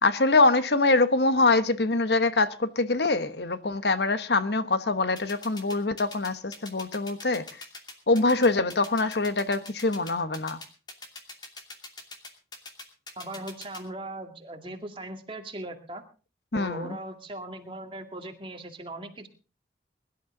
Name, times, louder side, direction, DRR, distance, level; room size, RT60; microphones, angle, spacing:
voice 1, 0.0-7.4 8.1-10.6 16.5-17.0, left 3 dB, 75° left, 1.1 m, -24 dB
sound 1, 5.2-13.8, left 3 dB, 25° left, 2.7 m, -42 dB
voice 2, 13.2-16.0 16.5-19.3, right 1 dB, 30° right, 2.2 m, -39 dB
22.5 x 12.0 x 3.8 m
head